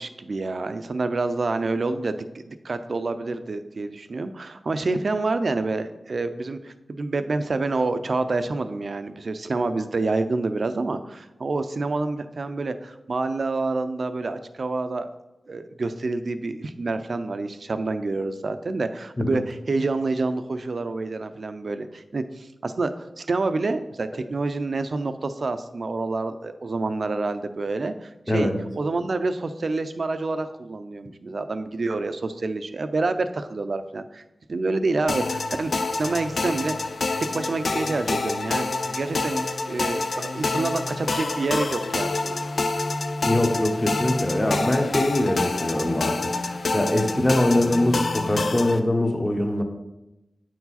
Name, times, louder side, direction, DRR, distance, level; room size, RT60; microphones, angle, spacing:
voice 1, 0.0-15.1 15.5-22.9 23.2-34.2 34.5-36.9 37.2-42.5, right 3 dB, 65° right, 10 dB, 0.5 m, -28 dB
voice 2, 28.3-28.6 43.2-49.6, left 1 dB, 25° left, 4 dB, 1.1 m, -23 dB
sound 1, 35.1-48.8, left 3 dB, 70° left, 0.5 m, -27 dB
8.5 x 4.6 x 4.2 m, 0.95 s
wide cardioid pair, 60°, 0 cm